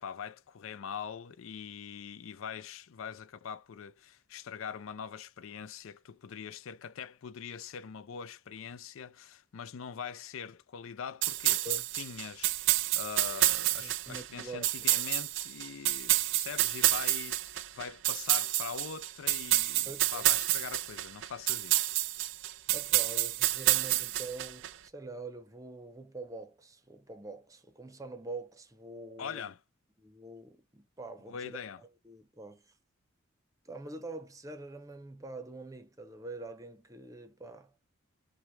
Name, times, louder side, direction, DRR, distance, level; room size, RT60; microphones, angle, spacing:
voice 1, 0.0-11.7 11.9-21.9 29.2-29.6 31.3-31.8, left 7 dB, 75° left, 0.4 m, -43 dB
sound 1, 11.2-24.7, right 15 dB, 60° right, 0.4 m, -29 dB
voice 2, 13.8-14.7 14.9-15.0 19.9-20.3 22.7-29.4 30.0-32.7 33.6-37.7, right 2 dB, 15° right, 0.7 m, -45 dB
6.0 x 2.2 x 3.1 m
head